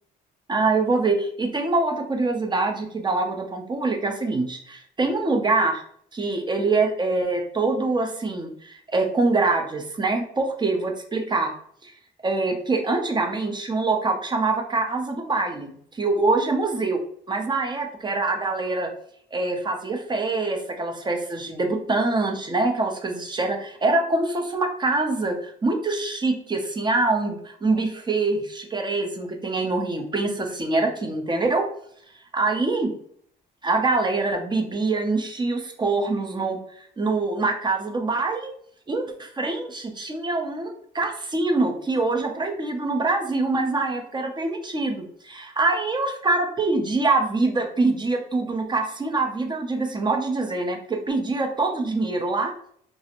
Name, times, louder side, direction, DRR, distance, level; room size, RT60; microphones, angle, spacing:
voice 1, 0.5-5.8 6.1-11.5 11.8-11.9 12.2-17.0 17.3-18.9 19.3-31.7 32.3-32.9 33.6-38.5 38.9-52.5, right 3 dB, 20° right, 3 dB, 0.5 m, -24 dB
2.4 x 2.0 x 2.8 m, 0.63 s
cardioid pair, 90°, 20 cm